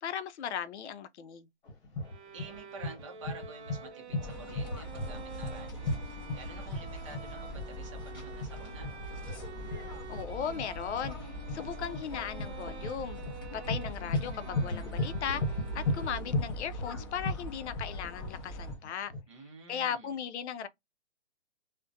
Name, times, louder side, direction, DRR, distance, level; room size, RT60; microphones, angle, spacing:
voice 1, 0.0-1.5 10.1-13.2 13.7-19.1 19.7-20.7, left 8 dB, 75° left, 0.5 m, -37 dB
sound 1, 1.6-19.2, left 2 dB, 50° left, 1.1 m, -36 dB
Bowed string instrument, 2.0-16.6, right 5 dB, 75° right, 0.6 m, -48 dB
voice 2, 2.3-5.9 6.3-8.9 19.3-20.2, right 4 dB, 30° right, 0.6 m, -49 dB
sound 2, 4.2-18.8, equal, 20° left, 0.5 m, -42 dB
2.3 x 2.1 x 2.6 m
hypercardioid pair, 170°, 34 cm